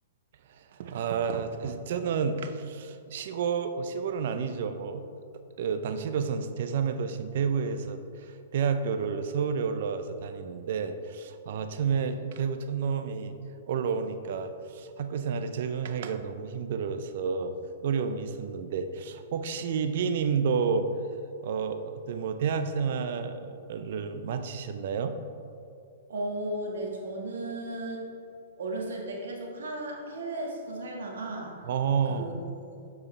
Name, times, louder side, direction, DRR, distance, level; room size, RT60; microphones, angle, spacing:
voice 1, 0.5-5.0 5.6-13.4 13.7-17.5 17.8-20.9 21.4-25.2 31.7-32.3, right 6 dB, 60° right, 9 dB, 0.5 m, -30 dB
voice 2, 26.1-28.0 28.6-31.5 32.1-32.3 32.7-32.8, right 1 dB, 80° right, -1 dB, 1.4 m, -35 dB
7.3 x 4.7 x 3.2 m, 2.4 s
hypercardioid pair, 135°, 0 cm